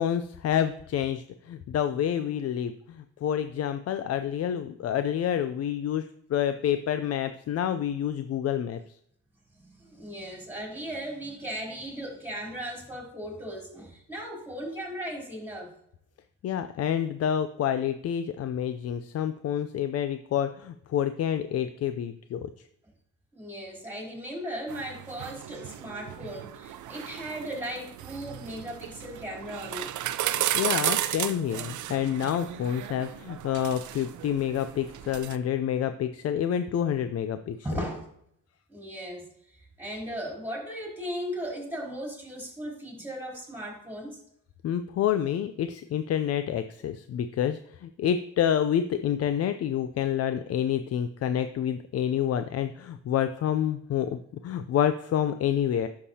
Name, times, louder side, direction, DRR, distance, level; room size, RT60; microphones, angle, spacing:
voice 1, 0.0-8.8 16.4-22.5 30.5-37.6 44.6-55.9, left 9 dB, 55° left, 10 dB, 0.5 m, -28 dB
voice 2, 9.6-15.7 23.3-29.9 37.6-38.1 38.7-39.3 39.5-44.2, equal, 5° right, -1 dB, 3.6 m, -37 dB
sound 1, 24.7-35.4, right 12 dB, 75° right, 0.6 m, -34 dB
11.0 x 6.6 x 2.8 m, 0.71 s
cardioid pair, 90°, 30 cm